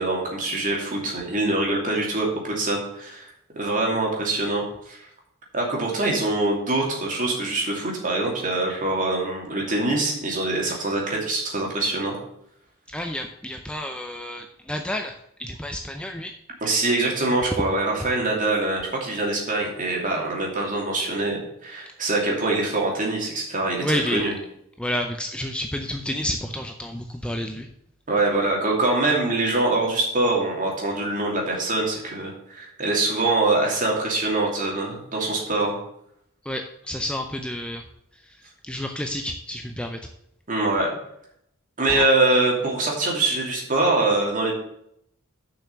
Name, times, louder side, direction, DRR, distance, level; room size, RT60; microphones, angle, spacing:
voice 1, 0.0-2.3 2.6-3.3 3.6-5.0 5.5-12.2 16.6-24.3 28.1-35.8 40.5-40.9 41.8-44.5, right 2 dB, 40° right, -1 dB, 2.7 m, -24 dB
voice 2, 12.9-16.3 23.8-24.3 24.8-27.7 36.4-37.8 38.1-40.0 41.9-42.1, left 1 dB, 5° left, 4 dB, 0.5 m, -30 dB
7.0 x 5.9 x 6.7 m, 0.73 s
head